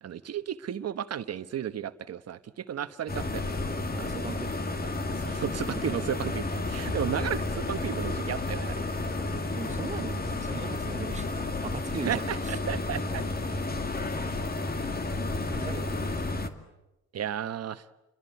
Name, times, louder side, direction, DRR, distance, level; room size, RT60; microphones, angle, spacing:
voice 1, 0.0-3.4 4.0-4.2 5.1-8.8 12.0-13.2 17.1-17.9, right 9 dB, 55° right, 1.2 m, -33 dB
sound 1, 3.1-16.5, left 2 dB, 30° left, 2.3 m, -31 dB
voice 2, 3.9-4.6 9.1-12.5 12.9-13.0 15.6-16.2, right 4 dB, 25° right, 1.1 m, -39 dB
30.0 x 22.5 x 8.2 m
cardioid pair, 90°, 30 cm